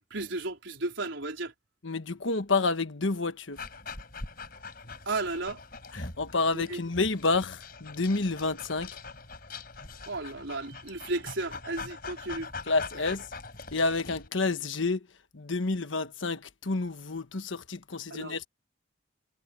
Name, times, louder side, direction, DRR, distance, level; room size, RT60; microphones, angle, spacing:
voice 1, 0.1-1.5 5.1-5.6 6.5-6.8 10.1-12.5 18.1-18.4, right 2 dB, 75° right, 4.0 m, -34 dB
voice 2, 1.8-3.6 5.9-8.9 12.7-13.3 13.7-15.1 15.3-18.4, left 3 dB, 80° left, 1.3 m, -29 dB
Dog, 3.6-14.3, left 4 dB, 50° left, 4.4 m, -43 dB
head